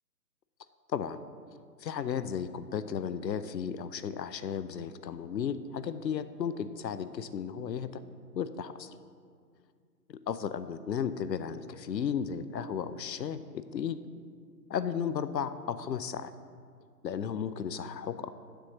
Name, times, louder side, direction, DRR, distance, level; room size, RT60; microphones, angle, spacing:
voice 1, 1.8-8.0 8.3-8.9 10.3-13.4 13.7-14.0 14.7-16.3 17.0-18.3, left 7 dB, 80° left, 13 dB, 0.7 m, -34 dB
7.7 x 6.8 x 6.3 m, 2.1 s
hypercardioid pair, 155°, 49 cm